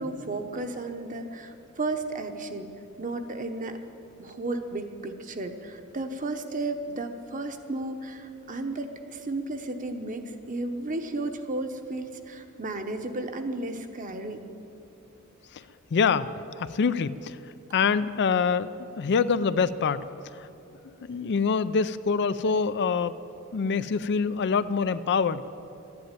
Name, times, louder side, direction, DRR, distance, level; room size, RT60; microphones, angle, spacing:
voice 1, 0.0-2.7 3.0-3.8 4.2-14.5, right 2 dB, 35° right, 7 dB, 1.0 m, -33 dB
voice 2, 15.9-17.4 17.7-18.7 19.0-20.1 20.3-20.5 21.0-23.2 23.5-25.4, left 5 dB, 50° left, 14 dB, 0.4 m, -25 dB
13.0 x 10.5 x 9.0 m, 2.8 s
head